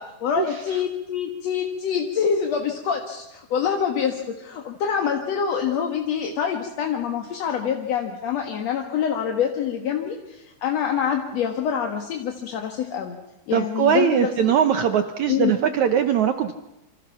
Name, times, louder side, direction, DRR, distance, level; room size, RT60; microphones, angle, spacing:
voice 1, 0.0-13.2 13.5-14.3 15.3-15.5, left 7 dB, 55° left, 3 dB, 2.1 m, -26 dB
voice 2, 13.5-16.5, right 9 dB, 85° right, 9 dB, 1.6 m, -21 dB
27.5 x 26.0 x 5.8 m, 0.92 s
omnidirectional pair, 4.7 m